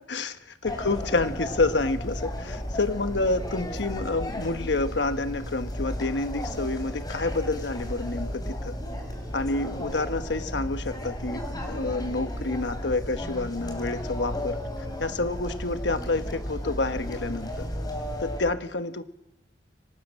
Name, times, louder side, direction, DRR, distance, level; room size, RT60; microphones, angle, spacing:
voice 1, 0.0-8.8 9.3-14.6 15.0-17.7 18.2-19.0, left 3 dB, 80° left, 9 dB, 1.2 m, -28 dB
sound 1, 0.6-18.4, equal, 25° left, 3.9 m, -34 dB
24.0 x 18.5 x 6.4 m, 0.93 s
head